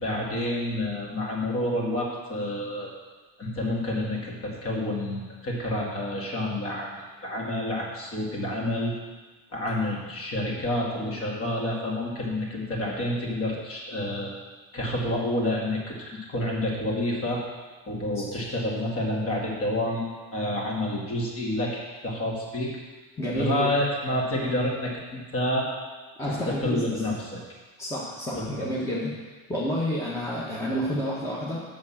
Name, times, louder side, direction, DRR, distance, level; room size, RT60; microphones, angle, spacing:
voice 1, 0.0-2.9 3.4-9.0 9.5-14.3 14.7-17.4 17.9-20.1 20.3-22.8 23.3-25.7 26.2-27.4 28.3-28.7, left 1 dB, 30° left, -2 dB, 2.3 m, -29 dB
voice 2, 23.2-23.7 26.2-26.9 27.8-29.1 29.5-31.6, equal, 5° left, -6 dB, 1.3 m, -29 dB
7.5 x 6.0 x 7.3 m, 1.3 s
cardioid pair, 145°, 43 cm